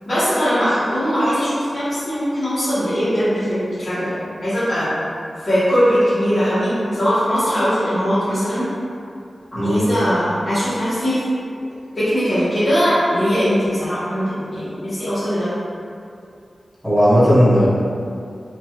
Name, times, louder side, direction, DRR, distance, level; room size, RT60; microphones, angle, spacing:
voice 1, 0.1-4.1 4.4-4.9 5.4-8.7 9.5-11.2 11.9-15.5, equal, 45° left, -16 dB, 1.1 m, -20 dB
voice 2, 16.8-17.7, equal, 5° left, -11 dB, 0.9 m, -15 dB
2.9 x 2.3 x 2.9 m, 2.4 s
wide cardioid pair, 115°, 0 cm